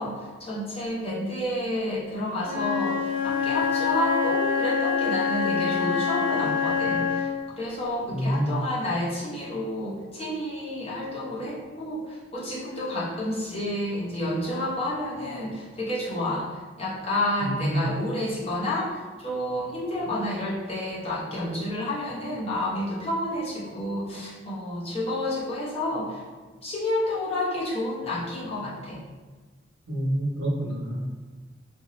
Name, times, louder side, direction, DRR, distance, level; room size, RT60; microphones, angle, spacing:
voice 1, 0.0-7.3 7.6-26.2 26.6-29.0, left 1 dB, 35° left, -7 dB, 1.0 m, -30 dB
Wind instrument woodwind instrument, 2.4-7.4, left 6 dB, 10° right, 0.9 m, -26 dB
voice 2, 8.1-8.6 17.4-17.8 29.9-31.0, right 1 dB, 85° right, -2 dB, 0.9 m, -27 dB
3.5 x 2.7 x 3.1 m, 1.3 s
head